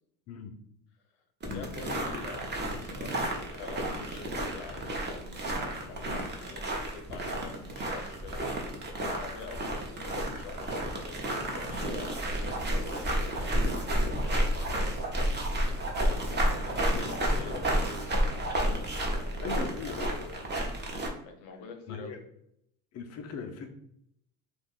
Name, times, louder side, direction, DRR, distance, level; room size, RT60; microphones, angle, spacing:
voice 1, 1.1-8.4 9.0-15.0 16.0-18.5 19.1-20.5 21.2-22.2, left 5 dB, 65° left, 5 dB, 0.8 m, -46 dB
sound 1, 1.4-21.1, right 1 dB, 25° right, 0.7 m, -31 dB
voice 2, 16.9-17.7 19.4-20.3 21.9-22.2 22.9-23.7, left 6 dB, 35° left, 5 dB, 0.4 m, -39 dB
2.4 x 2.2 x 3.5 m, 0.71 s
supercardioid pair, 90°, 46 cm